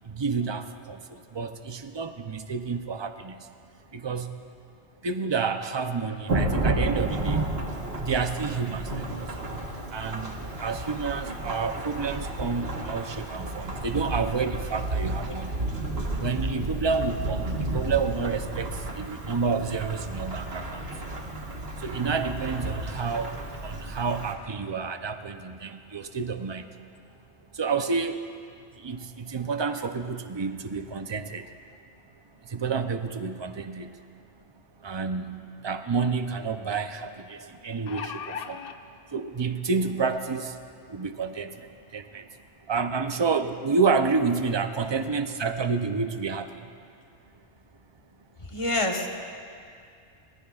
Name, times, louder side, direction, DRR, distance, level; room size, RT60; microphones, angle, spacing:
voice 1, 0.1-1.0 1.3-3.4 3.9-4.3 5.0-7.5 8.0-9.3 9.9-15.5 16.2-18.7 19.0-20.8 21.8-26.7 27.6-28.2 28.8-31.5 32.5-33.9 34.8-38.6 39.1-40.5 40.9-41.5 41.9-42.2 42.7-46.5, right 5 dB, 30° right, 8 dB, 0.6 m, -29 dB
Thunderstorm / Rain, 6.3-24.3, right 2 dB, 65° right, 1.7 m, -32 dB
sound 1, 35.4-35.5 35.9-36.0 37.5-38.8 39.7-39.8 40.2-40.3, left 7 dB, 60° left, 0.8 m, -37 dB
voice 2, 48.5-49.1, left 1 dB, 30° left, 1 dB, 1.3 m, -26 dB
24.0 x 19.5 x 2.4 m, 2.3 s
omnidirectional pair, 1.1 m